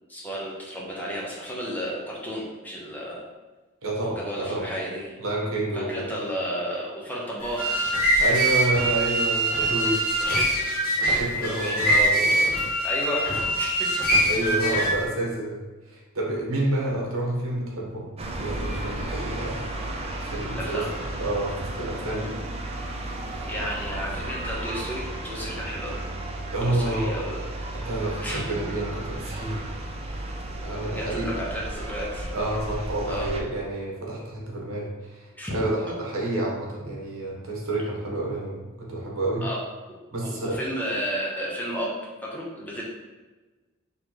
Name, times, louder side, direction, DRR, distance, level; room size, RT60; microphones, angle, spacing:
voice 1, 0.1-3.2 4.2-5.0 5.7-7.8 10.2-10.5 11.0-12.5 12.8-13.2 13.6-13.8 14.4-14.5 20.5-20.9 23.5-26.0 26.6-27.5 28.1-28.4 30.9-32.3 33.1-33.3 35.3-35.6 39.4-39.6 39.9-41.9 42.3-42.8, equal, 10° left, -4 dB, 0.9 m, -32 dB
voice 2, 3.8-4.6 5.2-6.3 8.2-10.0 11.0-12.3 14.2-15.6 15.8-18.1 18.4-19.6 20.3-20.9 21.2-22.4 26.5-27.2 27.7-29.6 30.6-31.4 32.3-39.5 40.1-40.6, right 1 dB, 75° right, -3 dB, 1.1 m, -29 dB
sound 1, 7.4-15.0, right 1 dB, 45° left, 1.2 m, -23 dB
sound 2, 18.2-33.4, right 1 dB, 30° right, 0.4 m, -34 dB
4.2 x 3.3 x 3.0 m, 1.2 s
head